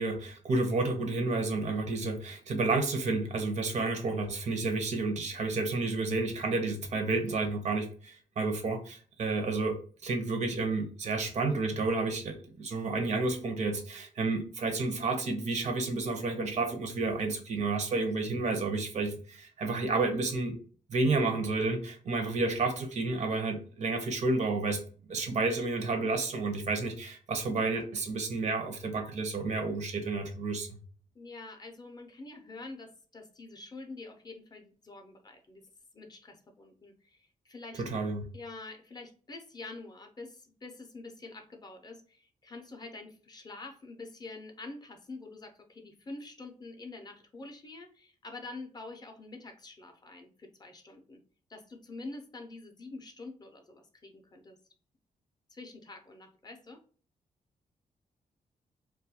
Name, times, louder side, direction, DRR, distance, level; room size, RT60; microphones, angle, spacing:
voice 1, 0.0-9.8 10.0-20.6 20.9-24.8 25.1-30.7 37.8-38.2, right 3 dB, 55° right, 5 dB, 0.5 m, -30 dB
voice 2, 31.1-35.6 35.9-37.8 38.3-51.2 51.5-54.6 55.5-56.8, left 3 dB, 30° left, 4 dB, 0.4 m, -46 dB
2.2 x 2.1 x 2.7 m, 0.42 s
wide cardioid pair, 130°, 14 cm